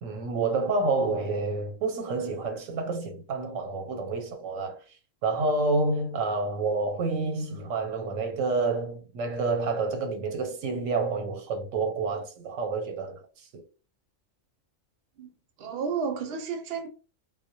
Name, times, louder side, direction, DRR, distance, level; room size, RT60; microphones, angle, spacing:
voice 1, 0.0-4.8 5.2-13.6, right 3 dB, 85° right, 1.0 m, -29 dB
voice 2, 15.6-16.9, right 6 dB, 65° right, 0.7 m, -31 dB
2.1 x 2.1 x 2.7 m
omnidirectional pair, 1.3 m